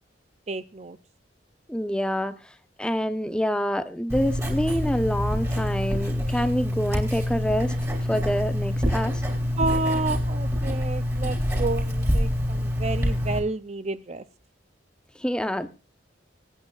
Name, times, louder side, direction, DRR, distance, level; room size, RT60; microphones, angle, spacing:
voice 1, 0.5-1.0 9.6-14.2, right 3 dB, 35° right, 0.5 m, -30 dB
voice 2, 1.7-2.4 2.8-7.7 8.1-9.2 15.2-15.7, equal, 5° left, 0.8 m, -26 dB
Writing, 4.1-13.4, equal, 15° right, 3.6 m, -26 dB
25.5 x 8.8 x 2.4 m
head